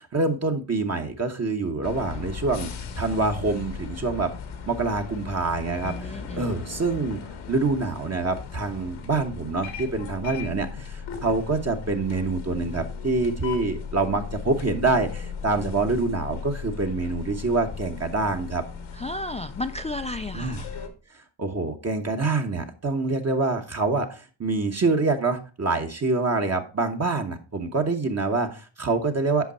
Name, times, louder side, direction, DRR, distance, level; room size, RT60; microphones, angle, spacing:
voice 1, 0.0-2.7 3.0-4.3 4.7-7.2 7.5-18.6 20.3-20.6 21.4-29.5, right 3 dB, 35° right, 3 dB, 1.1 m, -26 dB
sound 1, 1.8-20.9, left 6 dB, 85° left, 1.5 m, -37 dB
voice 2, 5.8-6.5 19.0-20.7, left 2 dB, 15° left, 8 dB, 0.3 m, -33 dB
8.2 x 5.3 x 4.2 m, 0.35 s
cardioid pair, 75°, 47 cm